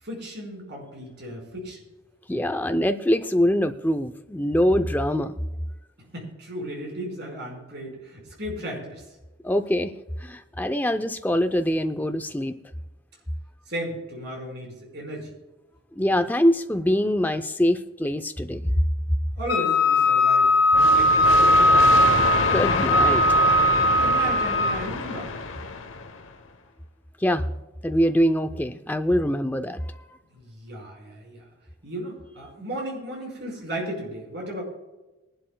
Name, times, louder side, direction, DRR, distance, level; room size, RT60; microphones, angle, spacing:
voice 1, 0.0-1.8 6.0-9.0 13.7-15.3 19.3-20.5 20.8-21.8 24.0-25.3 30.3-31.5 31.8-34.6, right 1 dB, 55° right, 0 dB, 4.7 m, -35 dB
voice 2, 2.3-5.3 9.4-9.9 10.2-12.5 16.0-18.7 22.5-23.2 27.2-27.5 27.8-30.0, equal, 10° left, 8 dB, 0.5 m, -23 dB
Wind instrument woodwind instrument, 19.5-24.8, left 1 dB, 60° left, 3.5 m, -19 dB
sound 1, 20.7-26.3, left 4 dB, 85° left, 0.9 m, -28 dB
22.0 x 11.5 x 2.3 m, 1.1 s
head